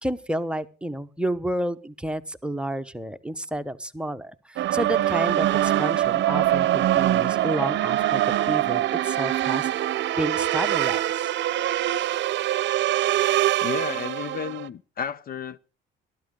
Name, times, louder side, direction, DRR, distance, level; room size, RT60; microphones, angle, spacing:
voice 1, 0.0-9.7 10.2-11.3, right 1 dB, 5° right, 1.0 m, -30 dB
sound 1, 4.6-14.7, right 13 dB, 60° right, 0.7 m, -23 dB
voice 2, 13.6-15.6, left 7 dB, 45° left, 0.6 m, -32 dB
18.5 x 13.0 x 3.8 m
cardioid pair, 90°, 21 cm